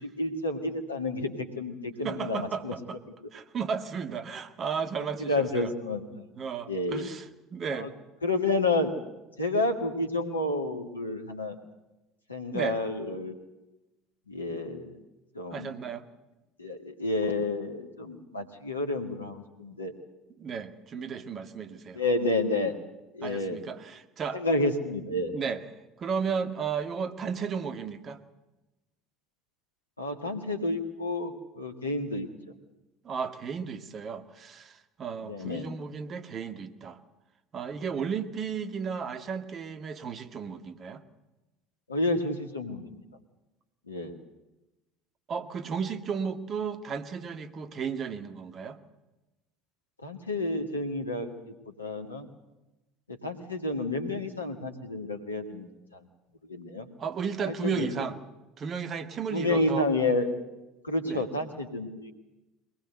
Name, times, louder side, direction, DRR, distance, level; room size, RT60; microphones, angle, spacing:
voice 1, 0.0-2.7 4.9-6.0 6.7-7.1 7.7-7.9 8.2-8.9 9.4-11.6 12.3-13.4 14.3-15.0 15.3-15.7 16.6-19.9 21.9-22.7 23.1-23.6 24.3-25.3 30.0-32.3 35.2-35.7 41.9-43.0 43.9-44.1 50.0-52.3 53.1-56.0 56.5-56.9 57.6-58.0 59.3-60.3 60.8-62.1, left 2 dB, 90° left, 5 dB, 1.9 m, -30 dB
voice 2, 2.0-3.0 3.3-5.7 6.1-7.2 7.5-7.9 12.5-12.8 15.5-16.1 20.4-22.0 23.2-24.4 25.3-25.6 26.0-28.2 33.0-37.0 37.5-41.0 45.3-48.8 57.0-58.2 58.6-59.9 61.0-61.2, right 6 dB, 40° right, 11 dB, 1.8 m, -34 dB
22.5 x 19.5 x 8.0 m, 1.0 s
figure-of-eight pair, 65°, 0 cm